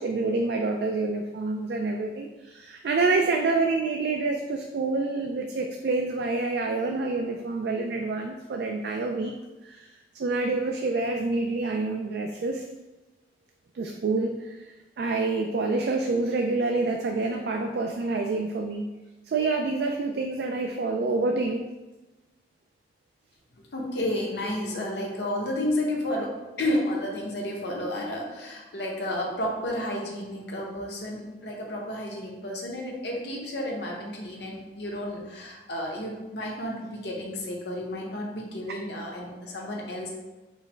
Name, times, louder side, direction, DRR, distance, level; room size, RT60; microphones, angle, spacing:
voice 1, 0.0-9.3 9.6-12.6 13.7-18.9 19.3-21.7 38.7-38.8, right 3 dB, 60° right, 3 dB, 0.3 m, -27 dB
voice 2, 23.7-40.1, left 1 dB, 70° left, -2 dB, 0.9 m, -31 dB
4.4 x 2.1 x 4.4 m, 1.1 s
head